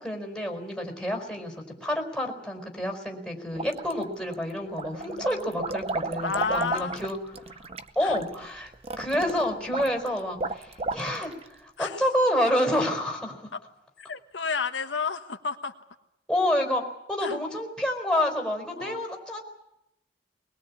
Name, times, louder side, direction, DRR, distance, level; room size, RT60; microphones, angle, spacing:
voice 1, 0.0-7.2 7.5-7.6 7.9-8.7 9.0-13.5 16.3-16.8 17.1-19.4, left 1 dB, 5° left, 4 dB, 4.4 m, -28 dB
sound 1, 3.5-4.3 4.7-11.4, right 3 dB, 35° right, 0.8 m, -33 dB
voice 2, 4.8-5.4 6.2-7.0 8.0-8.2 11.8-12.0 14.0-15.7 17.2-17.4 18.8-19.0, left 5 dB, 70° left, 6 dB, 1.4 m, -32 dB
22.0 x 21.0 x 8.5 m, 0.86 s
head